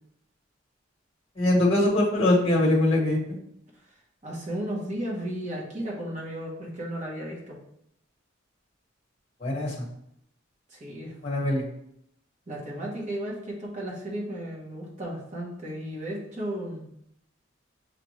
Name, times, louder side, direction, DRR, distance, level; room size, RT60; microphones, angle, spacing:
voice 1, 1.4-3.2 9.4-9.8 11.2-11.6, left 1 dB, 30° left, -2 dB, 1.3 m, -22 dB
voice 2, 4.2-7.6 10.7-11.1 12.5-16.8, right 1 dB, 35° right, -3 dB, 1.1 m, -34 dB
6.5 x 2.5 x 3.2 m, 0.74 s
head